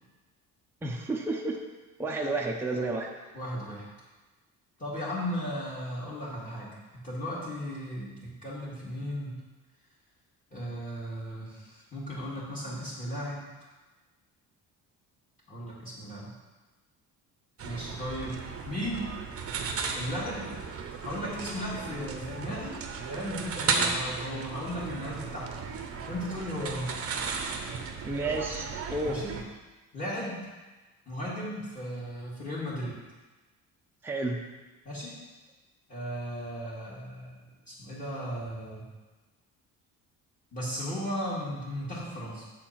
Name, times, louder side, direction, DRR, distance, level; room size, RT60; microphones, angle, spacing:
voice 1, 0.8-1.6 2.0-3.1 28.0-29.2 34.0-34.4, right 2 dB, 5° right, -1 dB, 0.7 m, -31 dB
voice 2, 3.3-3.8 4.8-8.1 8.4-9.3 10.5-13.4 15.5-16.3 17.6-18.4 18.6-19.1 19.9-20.5 21.0-22.8 23.1-25.5 26.1-26.9 29.0-29.3 29.9-30.4 31.1-32.9 34.8-35.1 35.9-38.9 40.5-42.5, equal, 20° left, -7 dB, 2.2 m, -36 dB
sound 1, 17.6-29.4, right 5 dB, 40° right, 0.8 m, -35 dB
7.5 x 4.4 x 5.8 m, 1.2 s
cardioid pair, 135°, 34 cm